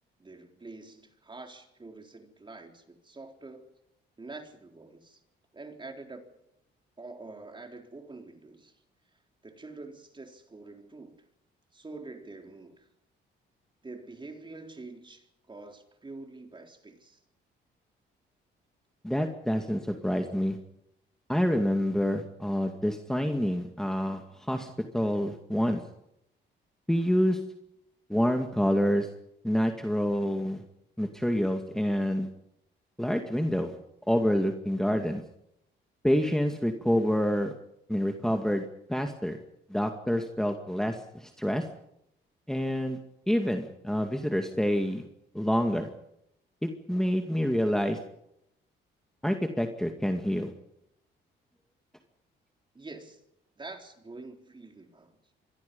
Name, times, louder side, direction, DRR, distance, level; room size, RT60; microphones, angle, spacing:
voice 1, 0.2-3.7 4.2-5.2 5.5-6.3 7.0-8.8 9.4-11.2 11.7-12.9 13.8-17.2 52.7-53.2 53.6-55.2, right 3 dB, 25° right, 4 dB, 4.0 m, -46 dB
voice 2, 19.0-20.6 21.3-25.8 26.9-27.4 28.1-29.1 29.4-30.6 31.0-32.3 33.0-33.7 34.1-35.2 36.0-37.5 37.9-39.4 39.7-41.7 42.5-43.0 43.3-45.0 45.3-45.9 46.6-48.0 49.2-50.5, equal, 5° left, 4 dB, 2.2 m, -27 dB
27.0 x 23.0 x 5.5 m, 0.80 s
cardioid pair, 90°, 20 cm